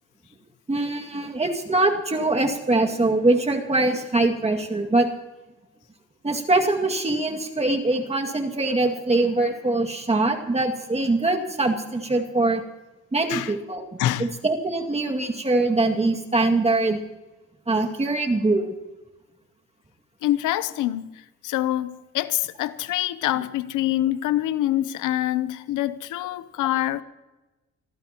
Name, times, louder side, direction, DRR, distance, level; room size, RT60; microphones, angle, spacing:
voice 1, 0.7-5.1 6.2-12.6 13.1-17.0 17.7-18.7, right 2 dB, 20° right, 2.1 m, -23 dB
voice 2, 14.0-14.3 20.2-27.0, left 14 dB, 90° left, 0.7 m, -25 dB
25.0 x 14.5 x 3.0 m
cardioid pair, 90°, 30 cm